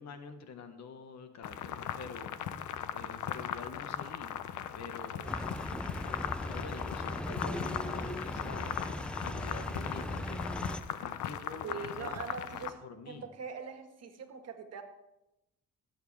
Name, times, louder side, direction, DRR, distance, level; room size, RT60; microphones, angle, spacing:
voice 1, 0.0-2.4 2.9-4.4 4.7-8.9 9.2-12.1 12.8-13.3, left 4 dB, 60° left, 8 dB, 1.4 m, -47 dB
sound 1, 1.4-12.7, left 10 dB, 75° left, 0.8 m, -39 dB
sound 2, 5.2-10.8, left 1 dB, 5° left, 0.6 m, -38 dB
voice 2, 11.6-14.8, right 6 dB, 55° right, 5 dB, 1.7 m, -42 dB
17.0 x 8.1 x 3.4 m, 0.88 s
cardioid pair, 90°, 30 cm